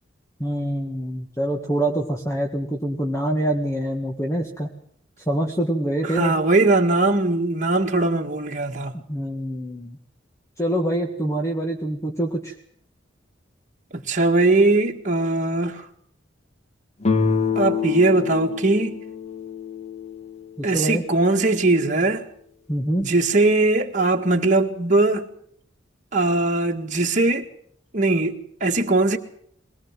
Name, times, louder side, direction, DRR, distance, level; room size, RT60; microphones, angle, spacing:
voice 1, 0.4-4.7 5.3-6.3 8.9-10.0 10.6-12.5 20.6-21.0 22.7-23.1, right 1 dB, 15° left, 1.9 m, -25 dB
voice 2, 6.0-8.9 14.1-15.9 17.6-19.0 20.6-22.3 23.0-25.3 26.1-27.5 27.9-29.2, right 2 dB, 40° right, 1.9 m, -20 dB
sound 1, 17.0-20.6, left 5 dB, 35° left, 1.8 m, -26 dB
22.0 x 18.5 x 7.6 m
head